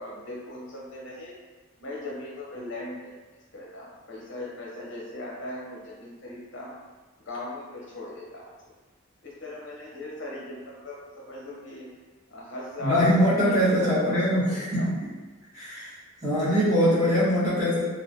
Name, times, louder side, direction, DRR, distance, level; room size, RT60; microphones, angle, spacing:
voice 1, 0.0-1.3 1.8-3.1 3.5-6.8 7.2-8.5 9.2-11.9 12.3-14.4 14.8-14.9, left 1 dB, 60° left, -4 dB, 0.6 m, -39 dB
voice 2, 12.8-15.1 15.5-15.9 16.2-17.8, equal, 15° right, -12 dB, 1.1 m, -22 dB
2.9 x 2.3 x 2.6 m, 1.3 s
head